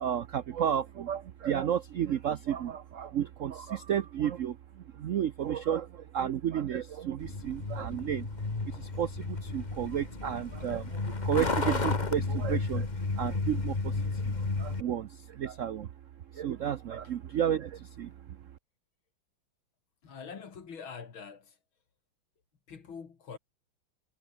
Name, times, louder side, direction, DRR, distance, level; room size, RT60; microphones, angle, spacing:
voice 1, 0.0-4.5 5.0-5.8 6.1-8.2 9.0-9.1 9.5-10.8 11.3-12.8 13.2-13.7 14.6-15.1 15.4-15.9 16.4-17.7 18.0-18.1, right 9 dB, 85° right, 0.6 m, -31 dB
Truck, 7.2-14.8, left 3 dB, 20° left, 1.7 m, -32 dB
voice 2, 20.0-21.6 22.7-23.4, left 6 dB, 75° left, 3.3 m, -44 dB
omnidirectional pair, 2.3 m